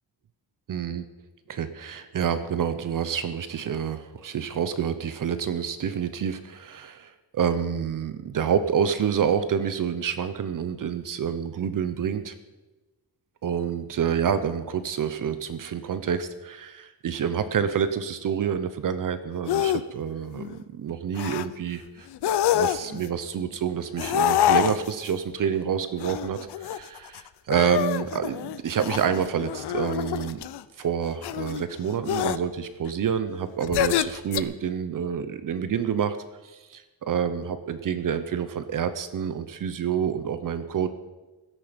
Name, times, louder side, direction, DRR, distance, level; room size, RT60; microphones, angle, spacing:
voice 1, 0.7-1.0 1.5-12.3 13.4-22.1 22.5-30.4 30.8-36.2 36.4-40.9, right 7 dB, 50° right, 11 dB, 0.8 m, -28 dB
sound 1, 19.5-19.8 20.2-20.6 21.2-21.4 22.1-23.1 24.0-25.1 26.0-27.2 27.5-30.6 31.2-31.6 32.1-32.4 33.6-34.4, left 11 dB, 75° left, 0.7 m, -26 dB
16.0 x 13.0 x 5.2 m, 1.2 s
wide cardioid pair, 180°, 40 cm